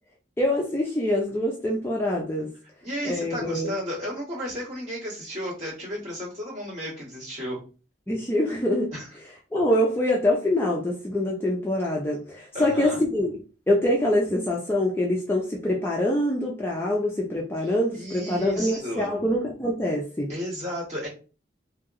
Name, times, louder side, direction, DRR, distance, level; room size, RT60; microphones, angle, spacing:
voice 1, 0.4-2.5 3.0-3.7 8.1-8.9 9.5-13.4 13.7-20.3, left 1 dB, 15° left, -2 dB, 0.4 m, -25 dB
voice 2, 2.8-7.6 8.9-9.1 12.5-13.0 17.9-19.2 20.3-21.1, equal, 40° right, -7 dB, 1.6 m, -33 dB
2.9 x 2.7 x 2.5 m, 0.35 s
head